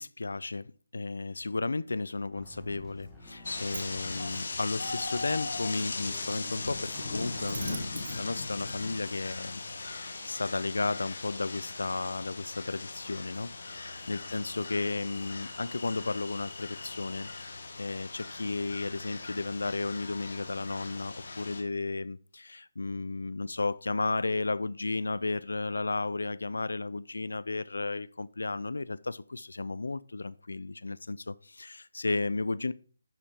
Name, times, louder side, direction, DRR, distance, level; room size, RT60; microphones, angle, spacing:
voice 1, 0.0-7.6 8.1-32.7, left 3 dB, 80° left, 0.5 m, -34 dB
sound 1, 2.3-7.7, equal, 5° left, 1.3 m, -50 dB
Sliding door, 2.8-9.2, right 5 dB, 40° right, 0.8 m, -48 dB
sound 2, 3.4-21.6, left 3 dB, 60° left, 1.7 m, -39 dB
11.0 x 4.3 x 5.0 m
hypercardioid pair, 170°, 0 cm